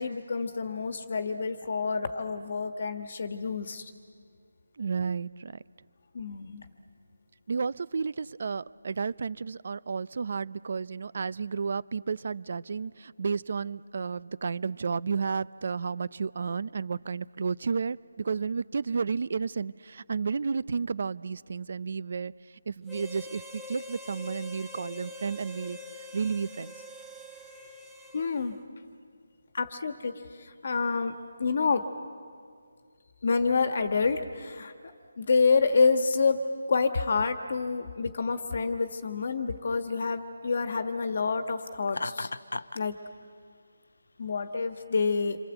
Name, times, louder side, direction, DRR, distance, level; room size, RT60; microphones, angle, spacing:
voice 1, 0.0-3.9 6.1-6.6 28.1-28.6 29.5-31.1 31.4-31.8 33.2-34.7 35.2-42.3 42.7-42.9 44.2-45.4, left 4 dB, 45° left, 8 dB, 1.4 m, -28 dB
voice 2, 4.8-5.6 7.5-22.3 22.7-25.8 26.1-26.7, right 5 dB, 45° right, 19 dB, 0.6 m, -32 dB
Harmonica, 22.9-28.5, left 2 dB, 5° right, 1.3 m, -45 dB
Laughter, 41.9-42.8, left 2 dB, 90° left, 0.7 m, -34 dB
28.0 x 24.5 x 8.0 m, 2.1 s
figure-of-eight pair, 170°, 0 cm